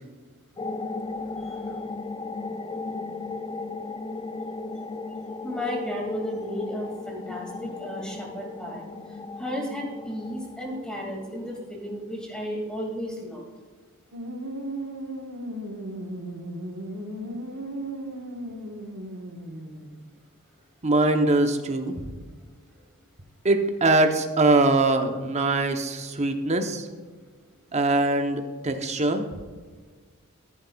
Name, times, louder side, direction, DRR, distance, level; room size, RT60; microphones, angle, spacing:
sound 1, 0.6-11.7, left 3 dB, 20° left, 0.4 m, -36 dB
voice 1, 1.4-1.8 5.4-8.9 9.4-13.4, equal, 5° left, -2 dB, 2.4 m, -34 dB
sound 2, 14.1-20.0, right 1 dB, 70° right, 1.4 m, -36 dB
voice 2, 20.8-21.9 23.4-26.9 27.7-29.2, right 2 dB, 30° right, 6 dB, 0.9 m, -22 dB
13.5 x 10.5 x 2.4 m, 1.5 s
head